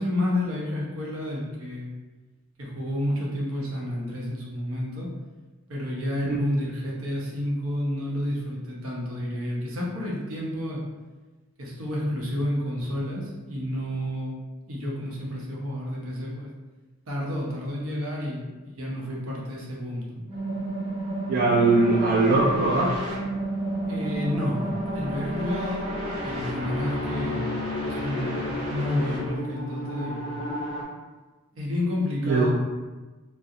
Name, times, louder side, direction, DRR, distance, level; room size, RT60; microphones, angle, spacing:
voice 1, 0.0-2.0 2.6-5.1 5.7-10.8 11.6-14.3 14.7-16.5 17.1-20.2 23.9-26.0 26.2-27.5 27.8-28.4 28.7-30.4 31.5-32.5, left 1 dB, 75° right, -4 dB, 0.7 m, -30 dB
sound 1, 20.3-30.8, equal, 25° right, 0.7 m, -31 dB
voice 2, 21.3-23.0 32.2-32.5, right 3 dB, 45° right, -5 dB, 0.3 m, -21 dB
2.4 x 2.0 x 2.7 m, 1.2 s
head